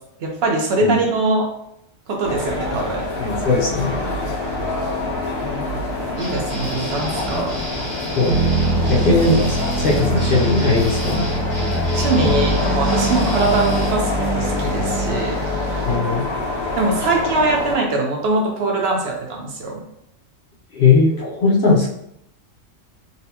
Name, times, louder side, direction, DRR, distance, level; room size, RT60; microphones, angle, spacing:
voice 1, 0.2-1.5 2.1-3.0 5.4-5.8 6.2-7.6 11.9-15.4 16.8-19.8, right 2 dB, 60° right, 0 dB, 0.8 m, -22 dB
sound 1, 2.2-17.8, left 2 dB, 80° left, 1.7 m, -26 dB
voice 2, 3.2-4.0 8.2-8.4 8.9-11.2 15.9-16.3 20.7-21.9, left 4 dB, 55° left, -4 dB, 0.7 m, -18 dB
sound 2, 6.2-13.9, right 1 dB, 30° right, 0.9 m, -32 dB
sound 3, 8.3-16.2, right 1 dB, 85° right, 1.0 m, -23 dB
4.0 x 2.1 x 2.7 m, 0.79 s
omnidirectional pair, 1.3 m